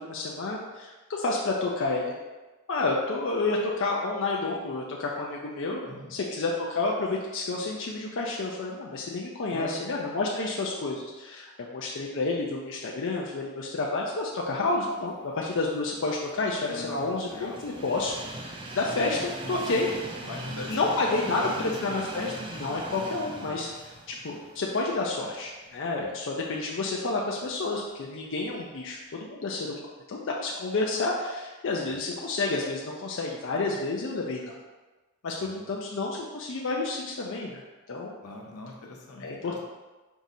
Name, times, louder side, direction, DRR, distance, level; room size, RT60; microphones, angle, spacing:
voice 1, 0.0-2.1 2.7-5.8 6.1-18.1 18.4-19.9 20.7-23.7 24.1-29.8 30.1-34.6 35.2-37.6 37.9-38.2 39.2-39.6, left 3 dB, 55° left, -2 dB, 0.5 m, -30 dB
voice 2, 5.8-6.2 9.5-9.8 16.6-17.6 19.4-19.6 20.2-20.8 21.1-22.1 23.4-23.6 26.0-26.2 31.8-32.0 35.4-35.7 38.2-39.6, left 2 dB, 85° left, 0 dB, 0.8 m, -40 dB
Train, 15.7-25.8 26.3-26.4 27.5-27.6, right 2 dB, 20° right, 0.4 m, -40 dB
4.7 x 2.7 x 4.0 m, 1.2 s
head